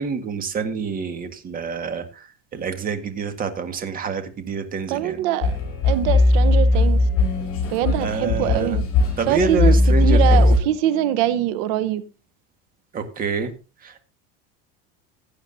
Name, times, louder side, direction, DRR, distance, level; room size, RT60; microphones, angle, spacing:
voice 1, 0.0-2.3 2.5-5.2 8.0-8.8 9.2-10.4 12.9-13.5 13.8-14.0, right 5 dB, 30° right, 1.7 m, -27 dB
voice 2, 4.9-5.6 5.8-7.0 7.7-8.8 9.3-9.8 10.0-12.0, right 12 dB, 70° right, 0.9 m, -23 dB
sound 1, 5.4-10.6, left 2 dB, 45° left, 7.7 m, -18 dB
16.0 x 9.6 x 2.7 m
cardioid pair, 150°, 31 cm